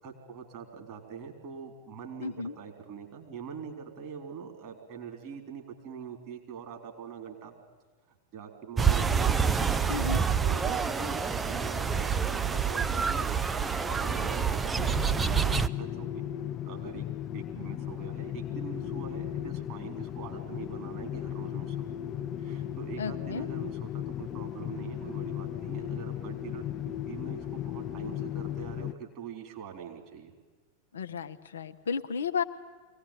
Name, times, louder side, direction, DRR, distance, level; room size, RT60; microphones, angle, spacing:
voice 1, 0.0-7.5 8.3-9.9 10.4-13.3 13.9-16.3 16.7-17.0 17.3-21.9 22.4-26.6 27.1-30.3, right 7 dB, 40° right, 3 dB, 3.9 m, -43 dB
voice 2, 2.2-2.6 9.9-10.2 23.0-23.5 30.9-32.4, left 5 dB, 65° left, 8 dB, 0.9 m, -33 dB
sound 1, 8.8-15.7, right 6 dB, 15° right, 0.6 m, -27 dB
sound 2, 14.8-28.9, left 11 dB, 30° left, 0.6 m, -36 dB
23.5 x 18.0 x 9.1 m, 1.4 s
figure-of-eight pair, 90°, 0 cm